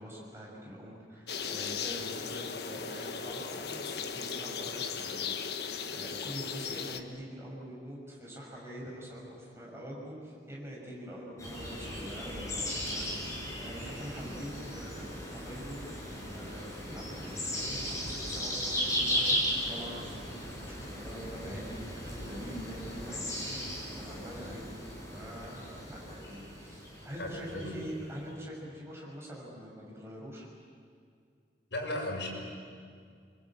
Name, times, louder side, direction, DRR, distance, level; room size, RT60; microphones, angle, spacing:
voice 1, 0.0-15.8 16.3-20.3 20.7-24.7 25.1-30.5, equal, 15° right, -3 dB, 6.2 m, -44 dB
sound 1, 1.3-7.0, left 6 dB, 70° left, 1.2 m, -37 dB
sound 2, 11.4-28.2, equal, 15° left, 6.2 m, -36 dB
voice 2, 27.2-27.7 31.7-32.3, left 1 dB, 85° left, 0 dB, 6.7 m, -35 dB
27.0 x 23.0 x 8.7 m, 2.2 s
head